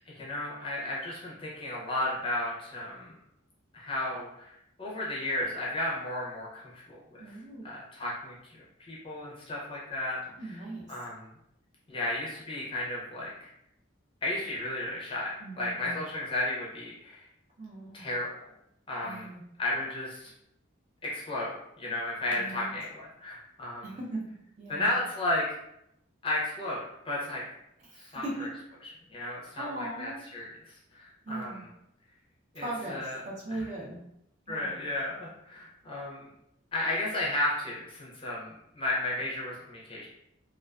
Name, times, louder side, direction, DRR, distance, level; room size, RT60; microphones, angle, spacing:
voice 1, 0.2-3.1 3.7-4.5 4.8-7.3 7.6-8.4 8.9-10.6 10.9-11.3 11.9-13.5 14.2-17.2 17.9-18.3 18.9-19.3 19.6-20.3 21.0-24.0 24.7-25.6 26.2-27.4 27.9-28.5 29.1-30.5 30.9-31.7 32.5-33.2 33.5-33.6 34.5-36.3 36.7-40.1, left 1 dB, 25° left, -5 dB, 0.5 m, -33 dB
voice 2, 7.2-7.7 10.4-10.9 15.4-16.1 17.6-18.1 19.0-19.4 22.3-22.7 23.8-24.3 24.6-25.0 27.9-28.5 29.6-30.3 31.2-31.6 32.6-34.0 34.5-34.8, right 1 dB, 35° right, -4 dB, 0.5 m, -39 dB
2.3 x 2.3 x 2.3 m, 0.80 s
head